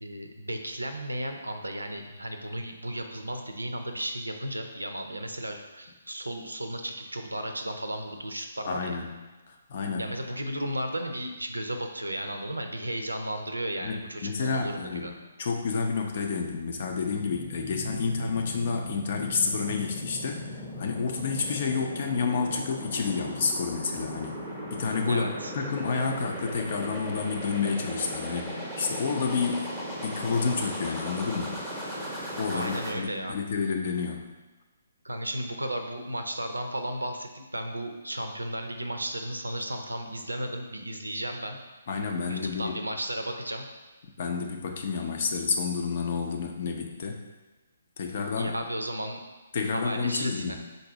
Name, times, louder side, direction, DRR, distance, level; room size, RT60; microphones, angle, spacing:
voice 1, 0.0-9.0 10.0-15.1 25.1-25.5 32.5-33.4 35.0-41.6 42.3-43.7 48.3-49.2 49.7-50.6, right 1 dB, 80° right, 5 dB, 0.5 m, -34 dB
voice 2, 8.7-9.1 9.5-10.1 13.8-20.5 20.8-24.4 24.7-29.8 30.0-31.6 32.4-34.3 41.9-42.8 44.2-47.2 48.0-48.6 49.5-50.6, left 5 dB, 45° left, 2 dB, 0.6 m, -30 dB
sound 1, 16.5-32.9, equal, ahead, 0.8 m, -38 dB
4.1 x 2.6 x 4.8 m, 1.2 s
figure-of-eight pair, 135°, 0 cm